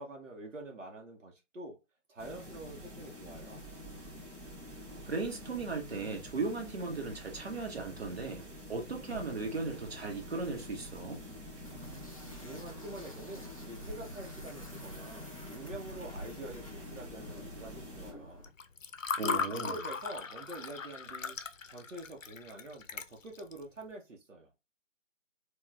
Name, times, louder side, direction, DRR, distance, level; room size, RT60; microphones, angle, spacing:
voice 1, 0.0-1.8 2.1-3.6 12.4-18.5 19.2-21.4 21.7-24.5, right 1 dB, 75° right, 0.9 m, -46 dB
sound 1, 2.2-18.1, equal, 20° right, 1.8 m, -47 dB
voice 2, 5.0-8.4 8.7-11.2 19.2-19.8, right 3 dB, 55° right, 1.0 m, -37 dB
sound 2, 9.1-18.5, equal, 30° left, 0.5 m, -49 dB
Water / Fill (with liquid), 18.4-23.6, left 5 dB, 90° left, 0.6 m, -37 dB
3.9 x 2.3 x 2.3 m
figure-of-eight pair, 155°, 37 cm